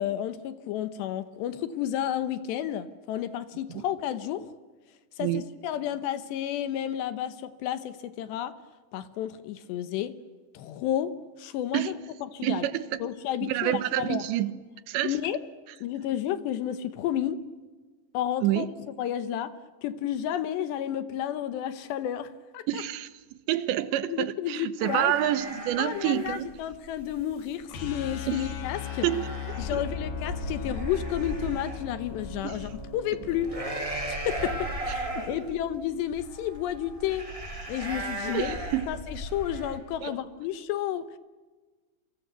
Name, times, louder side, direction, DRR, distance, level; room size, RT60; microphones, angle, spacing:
voice 1, 0.0-4.5 5.2-8.6 8.9-10.2 10.5-12.0 12.3-12.7 13.0-14.2 15.0-15.4 15.8-17.4 18.1-18.7 19.0-19.5 19.8-22.8 24.1-25.2 25.8-29.1 29.6-33.5 34.1-37.3 37.7-38.6 38.9-41.1, left 11 dB, 75° left, 13 dB, 3.0 m, -31 dB
voice 2, 12.4-13.0 13.4-14.5 14.9-15.2 18.4-18.7 22.7-26.5 28.3-28.5 29.0-29.3 29.7-29.8 32.4-32.6 35.3-35.6 38.2-38.8 40.0-40.1, right 13 dB, 75° right, 15 dB, 3.0 m, -28 dB
sound 1, 24.8-39.8, right 1 dB, 5° right, 4.7 m, -37 dB
sound 2, 27.7-33.8, left 9 dB, 55° left, 3.5 m, -38 dB
28.5 x 24.0 x 8.2 m, 1.3 s
omnidirectional pair, 5.5 m